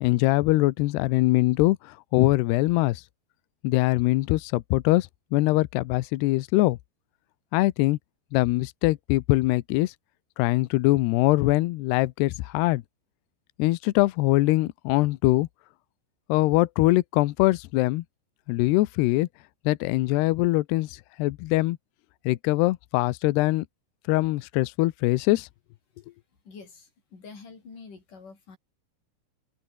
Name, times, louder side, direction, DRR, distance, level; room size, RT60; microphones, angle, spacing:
voice 1, 0.0-3.0 3.6-6.8 7.5-8.0 8.3-9.9 10.4-12.8 13.6-15.5 16.3-18.0 18.5-19.3 19.7-21.8 22.3-23.7 24.1-25.5, left 19 dB, 90° left, 2.4 m, -23 dB
voice 2, 26.5-28.6, left 4 dB, 40° left, 7.3 m, -46 dB
omnidirectional pair, 5.7 m